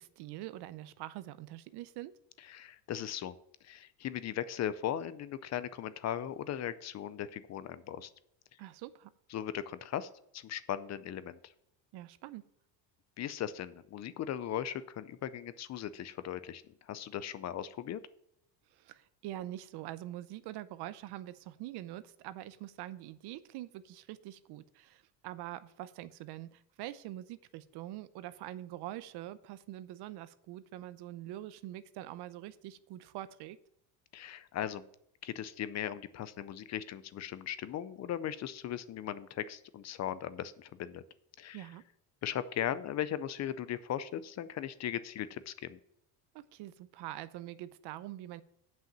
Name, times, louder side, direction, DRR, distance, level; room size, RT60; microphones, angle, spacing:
voice 1, 0.0-2.1 8.6-9.1 11.9-12.4 18.7-33.6 41.5-41.8 46.3-48.4, right 14 dB, 65° right, 15 dB, 0.6 m, -44 dB
voice 2, 2.5-3.4 3.6-8.1 9.3-11.4 13.2-16.6 16.9-18.0 34.1-34.8 35.2-41.0 41.4-41.7 42.2-45.8, left 10 dB, 40° left, 15 dB, 0.5 m, -38 dB
7.6 x 5.8 x 7.3 m, 0.73 s
cardioid pair, 130°, 44 cm